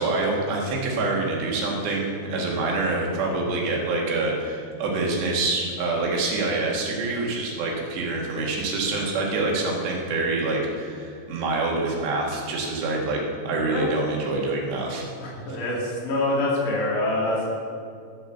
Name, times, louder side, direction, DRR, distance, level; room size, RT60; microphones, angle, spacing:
voice 1, 0.0-15.0, right 2 dB, 85° right, -2 dB, 4.2 m, -26 dB
voice 2, 15.2-17.5, left 2 dB, 85° left, -5 dB, 5.3 m, -25 dB
13.5 x 8.0 x 6.8 m, 2.4 s
omnidirectional pair, 4.8 m